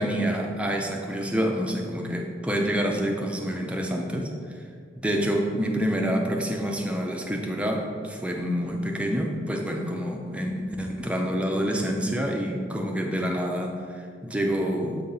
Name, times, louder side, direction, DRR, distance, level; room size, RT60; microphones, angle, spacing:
voice 1, 0.0-4.6 5.0-15.1, equal, 5° right, 1 dB, 0.5 m, -27 dB
7.3 x 4.1 x 3.9 m, 2.1 s
head